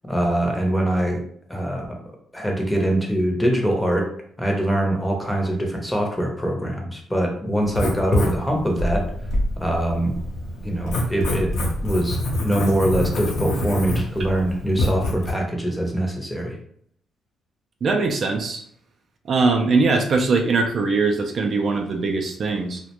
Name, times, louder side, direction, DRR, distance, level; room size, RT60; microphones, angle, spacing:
voice 1, 0.1-1.2 1.5-1.9 2.3-4.1 4.4-9.0 9.6-10.1 10.6-11.5 11.8-16.6, right 1 dB, 5° left, 1 dB, 0.6 m, -23 dB
Writing, 7.6-15.3, left 1 dB, 80° left, 0.6 m, -26 dB
voice 2, 17.8-18.6 19.3-22.8, right 3 dB, 50° right, 4 dB, 0.3 m, -21 dB
2.3 x 2.1 x 2.9 m, 0.65 s
cardioid pair, 90°, 0 cm